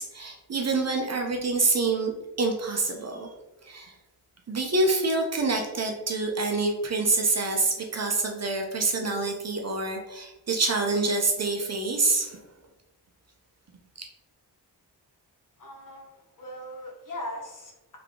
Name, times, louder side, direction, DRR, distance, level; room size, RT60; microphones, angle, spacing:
voice 1, 0.0-2.1 2.4-3.3 3.6-3.9 4.5-12.4, right 3 dB, 40° right, 2 dB, 0.6 m, -26 dB
voice 2, 15.6-18.0, left 1 dB, 45° left, 0 dB, 1.0 m, -40 dB
3.4 x 3.3 x 3.7 m, 0.99 s
wide cardioid pair, 165°, 42 cm